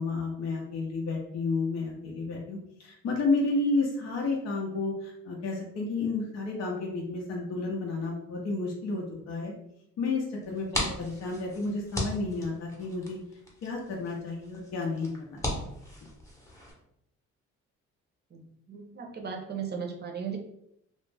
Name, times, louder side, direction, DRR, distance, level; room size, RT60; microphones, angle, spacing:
voice 1, 0.0-9.5 10.0-13.2 13.6-15.7, left 3 dB, 60° left, -2 dB, 0.7 m, -31 dB
sound 1, 10.4-16.7, left 1 dB, 10° left, 0.9 m, -38 dB
voice 2, 18.3-20.4, right 6 dB, 35° right, 2 dB, 0.6 m, -37 dB
2.4 x 2.1 x 3.3 m, 0.76 s
cardioid pair, 90°, 30 cm